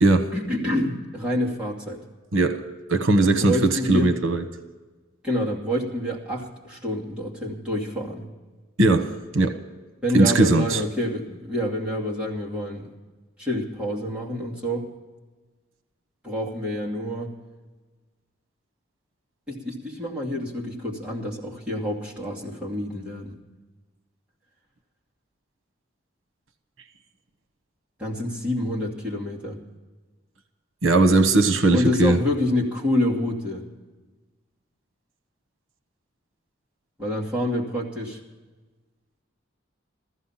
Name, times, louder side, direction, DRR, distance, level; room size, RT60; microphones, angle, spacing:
voice 1, 0.3-2.0 3.2-4.1 5.2-8.3 10.0-12.9 13.4-14.9 16.2-17.3 19.5-23.4 28.0-29.6 31.7-33.6 37.0-38.2, left 1 dB, 5° right, 2.5 m, -27 dB
voice 2, 2.3-2.6 2.9-4.4 8.8-9.6 10.1-10.8 30.8-32.2, right 2 dB, 85° right, 1.1 m, -19 dB
15.0 x 14.5 x 5.7 m
head